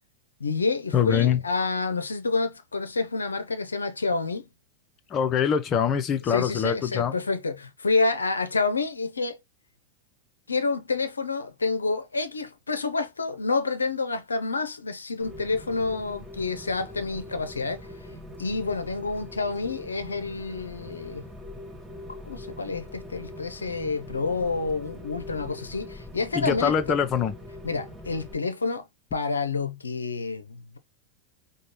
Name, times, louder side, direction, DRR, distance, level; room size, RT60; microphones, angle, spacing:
voice 1, 0.4-4.4 6.3-9.4 10.5-17.9 18.4-21.2 22.2-27.0 27.6-30.8, left 3 dB, 80° left, 0.6 m, -28 dB
voice 2, 0.9-1.4 5.1-7.1 26.3-27.3, left 8 dB, 30° left, 0.7 m, -24 dB
Rain, 15.2-28.3, left 1 dB, 5° right, 1.2 m, -42 dB
5.1 x 2.3 x 3.0 m
figure-of-eight pair, 90°, 0 cm